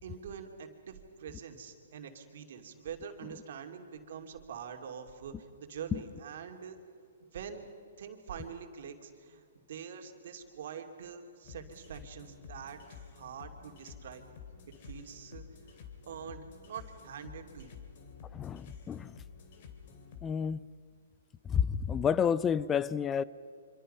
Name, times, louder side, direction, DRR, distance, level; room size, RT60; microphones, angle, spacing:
voice 1, 0.0-6.8 7.3-7.7 8.0-14.2 14.8-17.8, right 7 dB, 60° right, 2.7 m, -45 dB
sound 1, 11.4-20.3, left 6 dB, 50° left, 3.0 m, -51 dB
voice 2, 18.3-19.2 20.2-20.6 21.4-23.2, left 7 dB, 15° left, 0.5 m, -30 dB
26.0 x 24.5 x 5.6 m
hypercardioid pair, 155°, 0 cm